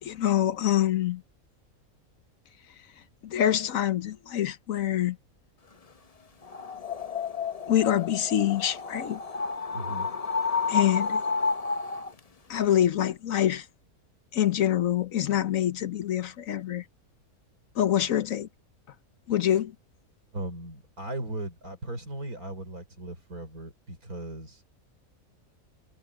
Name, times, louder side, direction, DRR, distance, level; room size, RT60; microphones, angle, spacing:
voice 1, 0.0-1.2 3.2-5.2 7.7-9.2 10.7-11.2 12.5-13.7 14.3-16.8 17.7-18.5 19.3-19.7, left 11 dB, 70° left, 1.2 m, -25 dB
sound 1, 6.4-12.2, left 5 dB, 35° left, 0.8 m, -30 dB
voice 2, 9.7-10.1 20.3-24.6, right 1 dB, 85° right, 5.8 m, -37 dB
omnidirectional pair, 1.5 m